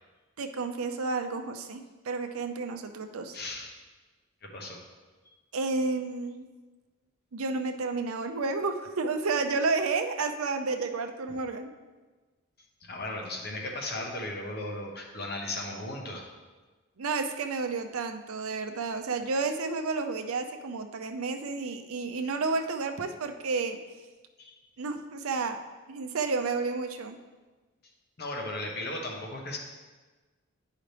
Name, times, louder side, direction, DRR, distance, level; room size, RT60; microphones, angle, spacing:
voice 1, 0.4-3.4 5.5-6.5 7.3-11.7 17.0-23.8 24.8-25.6 25.9-27.2, right 4 dB, 80° right, 6 dB, 0.6 m, -31 dB
voice 2, 3.3-3.7 4.4-4.8 12.8-16.3 24.4-24.5 28.2-29.6, left 2 dB, 45° left, 0 dB, 1.1 m, -36 dB
10.0 x 4.9 x 3.3 m, 1.3 s
head